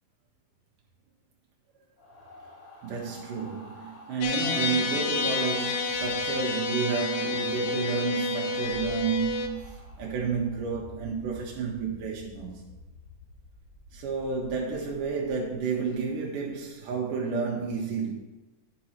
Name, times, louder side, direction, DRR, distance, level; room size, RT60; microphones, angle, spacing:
sound 1, 2.0-11.1, left 1 dB, 35° left, 1.9 m, -50 dB
voice 1, 2.8-12.6 13.9-18.1, right 5 dB, 85° right, 2.8 m, -31 dB
sound 2, 4.2-9.5, left 3 dB, 80° left, 2.1 m, -29 dB
sound 3, 8.6-16.7, left 2 dB, 50° left, 1.6 m, -48 dB
10.5 x 5.5 x 4.4 m
omnidirectional pair, 3.6 m